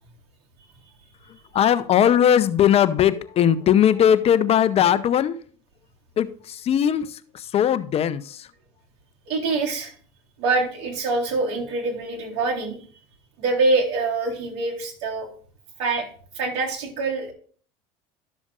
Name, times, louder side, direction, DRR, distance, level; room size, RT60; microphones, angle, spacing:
voice 1, 1.5-5.4 6.2-8.5, left 9 dB, 45° left, 14 dB, 0.7 m, -19 dB
voice 2, 9.3-9.9 10.4-12.8 13.4-15.3 15.8-16.1 16.3-17.3, right 3 dB, 75° right, -2 dB, 3.8 m, -24 dB
12.0 x 7.1 x 2.5 m, 0.44 s
supercardioid pair, 90°, 15 cm